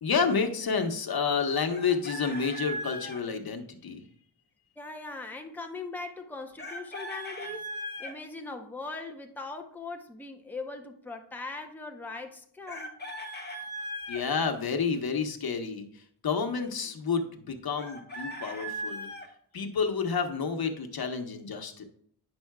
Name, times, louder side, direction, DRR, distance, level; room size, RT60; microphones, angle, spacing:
voice 1, 0.0-4.0 14.1-19.1 19.5-21.8, left 5 dB, 60° left, 1.1 m, -30 dB
Chicken rooster, 1.7-3.2 6.6-8.1 12.7-14.2 17.8-19.3, right 1 dB, 25° left, 1.5 m, -38 dB
voice 2, 4.8-7.7 8.0-12.9, left 3 dB, 5° left, 0.8 m, -40 dB
9.7 x 6.1 x 2.3 m
wide cardioid pair, 100°, 41 cm